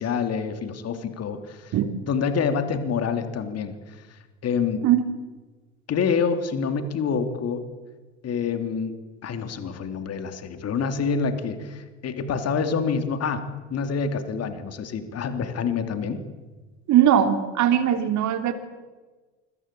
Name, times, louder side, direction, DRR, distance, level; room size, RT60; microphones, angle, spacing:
voice 1, 0.0-1.7 2.1-4.8 5.9-7.6 8.2-13.4 13.7-16.2, left 6 dB, 40° left, 8 dB, 3.3 m, -27 dB
voice 2, 16.9-18.5, right 10 dB, 50° right, 8 dB, 3.1 m, -20 dB
28.5 x 22.0 x 8.6 m, 1.3 s
hypercardioid pair, 70°, 37 cm